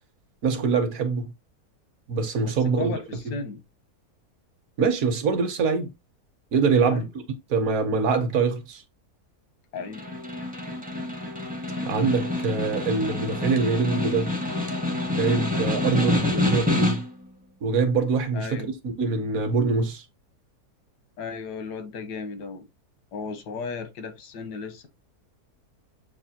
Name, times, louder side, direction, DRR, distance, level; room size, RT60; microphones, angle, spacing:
voice 1, 0.4-1.3 2.1-2.9 4.8-5.9 6.5-7.1 7.5-8.8 11.9-14.3 15.1-17.0 17.6-18.7 19.0-20.0, right 4 dB, 60° right, 1.2 m, -24 dB
voice 2, 2.4-3.6 6.9-7.1 9.7-10.0 18.3-18.7 21.2-22.7 23.1-24.9, left 5 dB, 85° left, 1.5 m, -35 dB
Snare drum, 9.8-17.3, left 2 dB, 10° right, 0.5 m, -27 dB
7.1 x 2.4 x 2.7 m
omnidirectional pair, 1.7 m